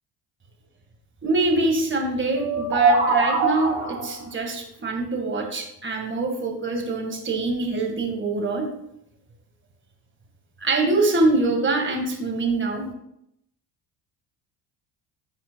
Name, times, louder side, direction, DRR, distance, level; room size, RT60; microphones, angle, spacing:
voice 1, 1.2-8.7 10.6-12.9, right 2 dB, 25° right, 3 dB, 1.6 m, -24 dB
sound 1, 2.3-4.2, right 4 dB, 75° right, 2.0 m, -21 dB
9.5 x 5.6 x 2.2 m, 0.79 s
cardioid pair, 95°, 43 cm